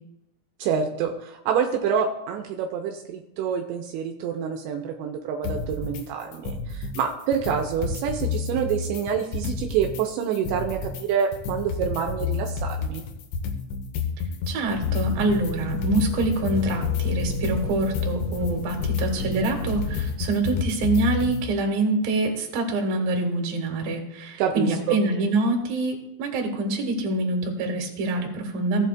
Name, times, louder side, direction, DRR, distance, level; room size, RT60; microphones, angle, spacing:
voice 1, 0.6-13.1 24.4-25.0, right 7 dB, 85° right, 3 dB, 2.9 m, -27 dB
sound 1, 5.4-6.0 6.3-7.0 7.3-10.0 10.3-21.5, left 6 dB, 80° left, 3.5 m, -30 dB
voice 2, 14.5-28.9, right 2 dB, 60° right, 3 dB, 2.7 m, -25 dB
sound 2, 14.7-20.2, left 3 dB, 60° left, 3.2 m, -34 dB
16.0 x 7.8 x 2.4 m, 0.88 s
omnidirectional pair, 5.4 m